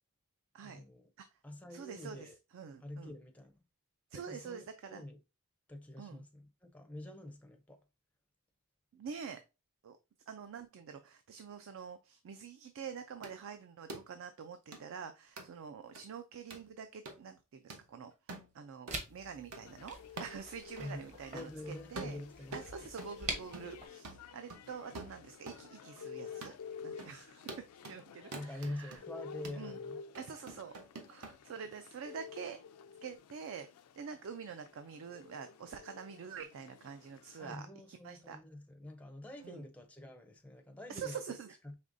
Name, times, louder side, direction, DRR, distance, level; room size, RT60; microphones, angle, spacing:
voice 1, 0.6-1.1 1.4-2.4 2.8-3.6 4.1-5.2 5.7-7.8 20.8-22.6 28.3-30.0 37.4-41.2 41.6-41.8, left 1 dB, 5° left, 0.5 m, -46 dB
voice 2, 1.7-3.1 4.1-5.0 6.0-6.2 8.9-9.4 9.8-10.0 10.3-18.1 18.5-22.2 22.5-26.6 26.8-27.5 27.9-29.0 29.6-29.8 30.2-30.7 31.1-32.6 33.0-33.7 34.0-38.4 39.4-39.6 40.9-41.6, right 6 dB, 60° right, 0.4 m, -46 dB
sound 1, 13.2-13.4 13.9-14.1 14.7-14.8 15.4-15.5 15.9-16.0 16.5-16.7 17.1-17.2 17.7-17.8 18.3-18.5 18.9-19.0 19.5-19.6 20.2-20.4 20.8-20.9 21.4-21.6 22.0-23.2 23.5-23.8 24.0-25.6 26.0-26.1 26.4-26.6 27.0-27.1 27.5-28.0 28.3-29.0 29.4-29.6 30.1-31.4, right 2 dB, 80° right, 0.9 m, -47 dB
sound 2, 18.9-23.9, right 2 dB, 35° right, 0.9 m, -45 dB
sound 3, 19.6-37.5, left 6 dB, 80° left, 0.4 m, -51 dB
5.0 x 3.2 x 2.5 m
head